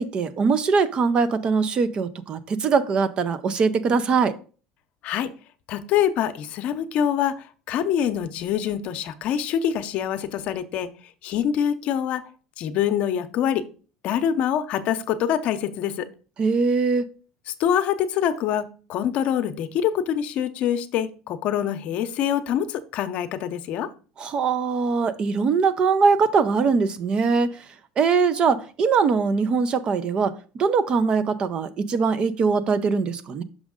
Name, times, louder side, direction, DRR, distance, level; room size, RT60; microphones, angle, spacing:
voice 1, 0.0-4.3 16.4-17.1 24.2-27.5 28.0-33.4, right 5 dB, 40° right, 13 dB, 0.6 m, -22 dB
voice 2, 5.7-10.9 11.2-12.2 12.6-13.6 14.0-16.1 17.6-23.9, left 9 dB, 60° left, 10 dB, 0.7 m, -25 dB
6.2 x 5.2 x 3.6 m, 0.37 s
supercardioid pair, 110°, 2 cm